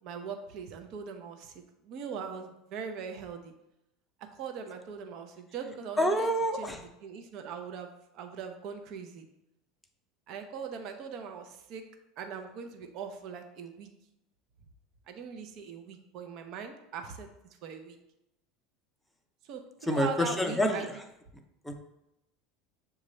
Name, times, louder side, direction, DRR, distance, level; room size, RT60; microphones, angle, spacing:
voice 1, 0.0-3.5 4.3-9.3 10.3-11.8 12.2-13.9 15.1-17.3 17.6-18.0 19.4-20.9, right 6 dB, 55° right, 6 dB, 0.6 m, -41 dB
voice 2, 6.0-6.8 19.9-20.8 21.6-21.8, equal, 5° left, 4 dB, 0.6 m, -27 dB
6.7 x 2.4 x 3.1 m, 0.86 s
supercardioid pair, 110°, 0 cm